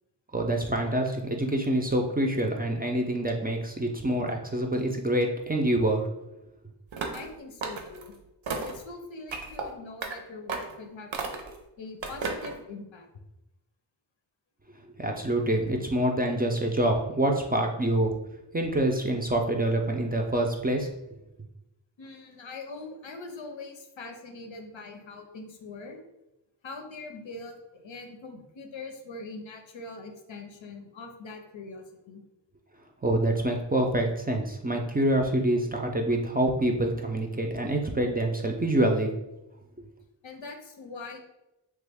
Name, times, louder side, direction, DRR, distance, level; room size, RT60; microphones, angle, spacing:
voice 1, 0.3-6.1 15.0-18.1 18.5-20.9 33.0-39.1 39.8-39.9, right 1 dB, 20° right, 1 dB, 0.4 m, -26 dB
sound 1, 6.9-7.3 7.6-8.1 8.5-8.8 9.3-9.6 10.0-10.1 10.5-10.8 11.1-11.6 12.0-12.5, right 4 dB, 80° right, 0.6 m, -33 dB
voice 2, 7.1-8.2 8.6-11.3 11.8-13.1 22.0-26.0 26.6-32.2 40.2-41.2, left 3 dB, 85° left, 4 dB, 0.6 m, -42 dB
3.3 x 2.3 x 3.4 m, 0.93 s
wide cardioid pair, 60°, 45 cm